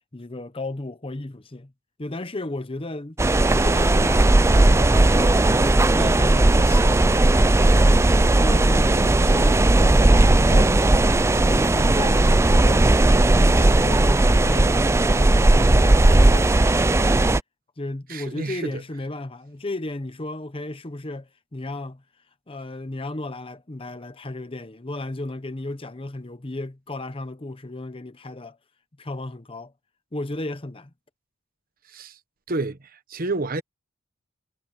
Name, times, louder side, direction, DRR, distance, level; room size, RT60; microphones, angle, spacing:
voice 1, 0.1-1.7 2.0-3.2 3.5-7.1 7.7-11.1 11.4-12.9 13.4-17.2 17.8-22.0 22.5-28.6 29.0-29.7 30.1-30.9, left 2 dB, 25° left, 0.9 m, -34 dB
sound 1, 3.2-17.4, right 2 dB, 15° right, 0.4 m, -17 dB
voice 2, 18.1-18.8 31.9-32.2 32.5-33.6, right 2 dB, 45° right, 1.1 m, -29 dB
head